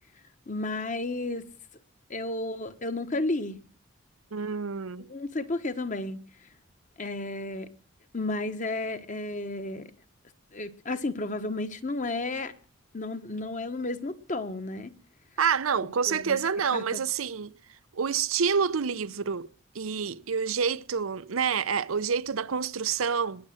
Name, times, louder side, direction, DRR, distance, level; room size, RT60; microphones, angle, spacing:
voice 1, 0.5-1.4 2.1-3.6 5.1-6.2 7.0-7.7 8.1-9.9 10.5-12.5 12.9-14.9 16.1-16.4 16.7-17.0, left 2 dB, 40° left, 1.3 m, -32 dB
voice 2, 4.3-5.1 15.4-17.5 17.9-19.5 19.7-23.5, right 6 dB, 85° right, 0.7 m, -28 dB
20.5 x 7.5 x 7.6 m
head